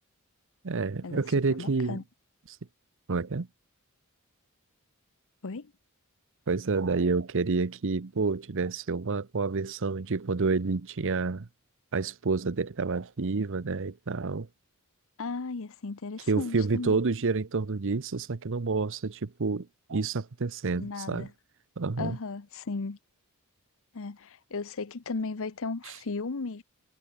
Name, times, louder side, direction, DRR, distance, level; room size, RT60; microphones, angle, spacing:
voice 1, 0.6-2.0 3.1-3.5 6.5-11.5 11.9-14.5 16.3-21.3 21.8-22.2, right 4 dB, 60° right, 0.8 m, -29 dB
voice 2, 1.6-2.0 5.4-5.7 15.2-17.0 20.8-21.3 22.0-23.0 23.9-26.6, left 4 dB, 65° left, 0.8 m, -35 dB
head